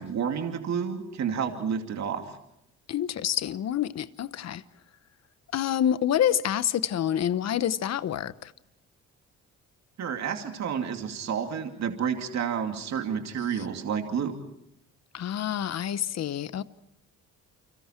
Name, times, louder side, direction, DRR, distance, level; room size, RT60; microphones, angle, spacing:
voice 1, 0.0-2.4 10.0-14.4, right 7 dB, 65° right, 2.6 m, -30 dB
voice 2, 2.9-4.6 5.5-8.5 15.1-16.6, left 10 dB, 60° left, 1.0 m, -27 dB
29.5 x 25.0 x 4.5 m
cardioid pair, 90°, 30 cm